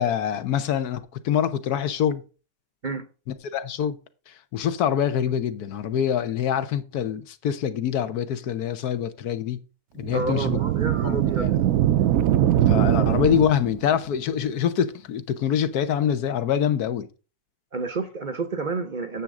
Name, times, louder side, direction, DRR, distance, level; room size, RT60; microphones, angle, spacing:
voice 1, 0.0-2.2 3.5-4.0 4.3-9.6 10.0-10.6 11.0-11.5 12.7-17.1, left 9 dB, 75° left, 1.3 m, -25 dB
sound 1, 10.0-13.9, right 11 dB, 70° right, 1.0 m, -22 dB
voice 2, 10.1-11.5 13.0-13.2 17.7-19.2, right 3 dB, 40° right, 0.7 m, -30 dB
9.6 x 7.4 x 3.7 m
omnidirectional pair, 1.6 m